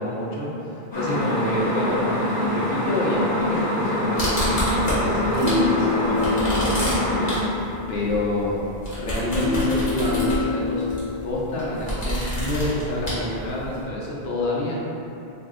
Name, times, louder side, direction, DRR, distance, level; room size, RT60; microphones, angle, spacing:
voice 1, 0.0-8.7 8.9-10.9 11.2-14.8, left 1 dB, 75° left, -5 dB, 0.9 m, -28 dB
sound 1, 0.9-7.4, left 1 dB, 25° left, 0.8 m, -25 dB
sound 2, 4.2-5.7 6.0-13.8, equal, 50° left, 1.1 m, -29 dB
sound 3, 5.0-7.4 9.4-11.4 11.9-12.0, left 3 dB, 65° right, 0.7 m, -26 dB
2.6 x 2.1 x 3.5 m, 2.9 s
omnidirectional pair, 1.1 m